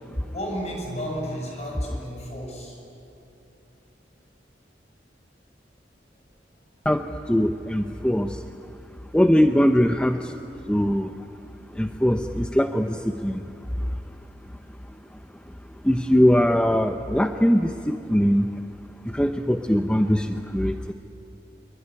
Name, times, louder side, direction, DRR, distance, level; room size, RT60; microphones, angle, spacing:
voice 1, 0.3-2.8, equal, 40° left, 0 dB, 7.3 m, -32 dB
voice 2, 7.3-8.3 9.1-10.3 10.7-11.1 11.8-13.0 13.2-13.4 15.8-18.5 19.1-20.9, equal, 5° left, 6 dB, 0.7 m, -21 dB
25.5 x 23.0 x 9.8 m, 3.0 s
head